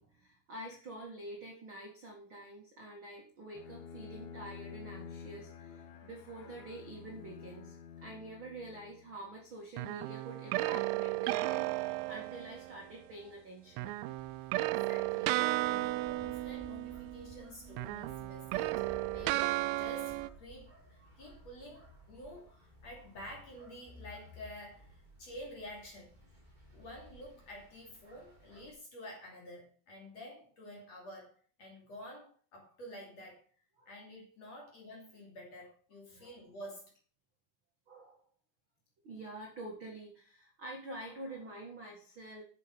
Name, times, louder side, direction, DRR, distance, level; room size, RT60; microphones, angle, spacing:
voice 1, 0.0-7.8 8.0-13.9 33.8-33.9 34.5-34.6 36.1-36.4 37.9-38.2 39.0-42.4, right 1 dB, 50° right, -2 dB, 1.4 m, -47 dB
Bowed string instrument, 3.5-9.4, left 7 dB, 75° left, 2.3 m, -49 dB
sound 1, 9.8-12.9 13.8-17.4 17.7-20.3, right 18 dB, 85° right, 3.1 m, -34 dB
sound 2, 13.7-28.7, equal, 10° right, 2.6 m, -57 dB
voice 2, 14.6-15.4 15.6-26.1 26.7-33.4 33.9-36.9, left 1 dB, 40° left, -1 dB, 3.1 m, -50 dB
10.5 x 7.2 x 5.3 m, 0.42 s
omnidirectional pair, 5.9 m